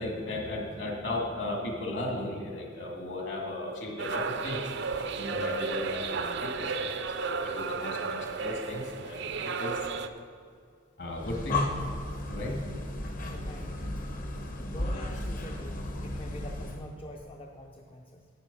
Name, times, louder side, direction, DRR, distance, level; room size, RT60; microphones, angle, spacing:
voice 1, 0.0-4.6 4.9-9.8 11.0-11.7 12.3-12.6, left 1 dB, 60° left, 0 dB, 2.2 m, -36 dB
sound 1, 4.0-10.1, right 4 dB, 55° right, 0.5 m, -33 dB
Breathing, 11.1-16.9, left 2 dB, 40° left, 0.9 m, -35 dB
voice 2, 13.2-13.8 14.6-18.3, equal, 25° left, 1 dB, 0.5 m, -46 dB
11.0 x 8.8 x 5.4 m, 2.2 s
head